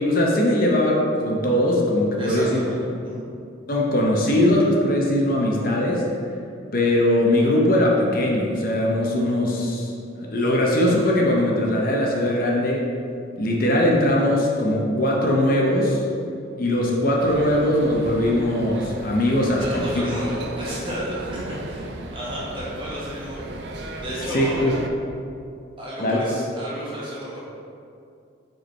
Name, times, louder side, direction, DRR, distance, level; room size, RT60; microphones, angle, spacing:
voice 1, 0.0-2.6 3.7-6.1 6.7-9.9 10.3-12.8 13.4-16.0 16.6-20.1 24.3-24.7 26.0-26.2, left 1 dB, 45° left, -2 dB, 0.7 m, -20 dB
voice 2, 2.2-3.3 19.6-23.5 24.0-24.7 25.8-27.4, equal, 25° right, -7 dB, 1.3 m, -32 dB
sound 1, 17.2-24.9, right 1 dB, 55° right, 0.5 m, -35 dB
5.2 x 4.6 x 4.4 m, 2.5 s
head